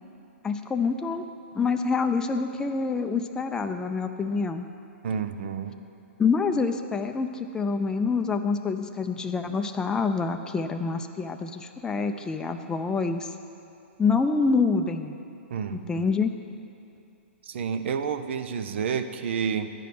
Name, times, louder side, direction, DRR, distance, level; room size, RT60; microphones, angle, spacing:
voice 1, 0.4-1.3 1.5-4.7 6.2-13.3 14.0-15.2 15.7-16.3, left 4 dB, 10° left, 6 dB, 0.5 m, -26 dB
voice 2, 5.0-5.8 15.5-16.0 17.4-19.7, right 6 dB, 65° right, 9 dB, 0.6 m, -30 dB
11.0 x 5.1 x 7.7 m, 2.6 s
hypercardioid pair, 125°, 7 cm